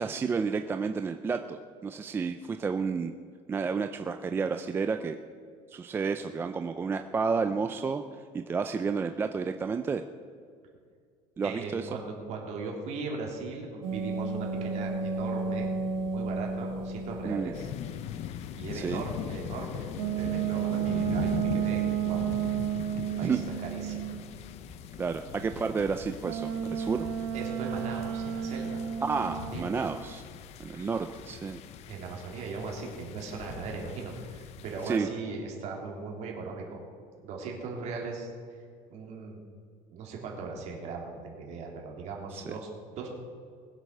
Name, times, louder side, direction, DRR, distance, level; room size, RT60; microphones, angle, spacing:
voice 1, 0.0-3.2 3.5-5.2 5.7-8.0 8.3-10.0 11.4-11.9 17.2-17.5 18.7-19.0 23.2-23.4 25.0-27.1 29.0-30.2 30.6-31.6 34.8-35.1 42.3-42.4, right 5 dB, 15° right, 8 dB, 0.4 m, -31 dB
voice 2, 11.4-17.7 18.5-22.3 22.8-24.0 27.3-28.8 29.1-29.7 31.9-36.8 37.2-38.3 38.9-39.4 39.9-43.1, right 4 dB, 45° right, 0 dB, 3.3 m, -39 dB
sound 1, 13.8-17.6 19.9-24.3 26.2-30.0, right 7 dB, 75° right, 2.1 m, -32 dB
sound 2, 17.5-35.0, left 10 dB, 45° left, 0.6 m, -40 dB
20.5 x 8.1 x 6.6 m, 2.2 s
cardioid pair, 175°, 16 cm